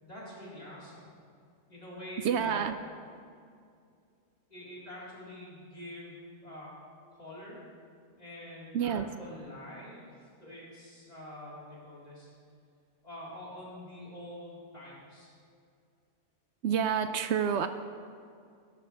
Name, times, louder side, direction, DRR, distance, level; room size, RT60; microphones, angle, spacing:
voice 1, 0.0-1.1 1.7-2.6 4.5-6.7 7.1-7.6 8.2-12.3 13.0-15.3, left 1 dB, 35° left, -8 dB, 4.3 m, -46 dB
voice 2, 2.2-2.8 8.7-9.1 16.6-17.7, right 8 dB, 70° right, 10 dB, 0.8 m, -28 dB
17.0 x 12.5 x 3.4 m, 2.3 s
omnidirectional pair, 1.2 m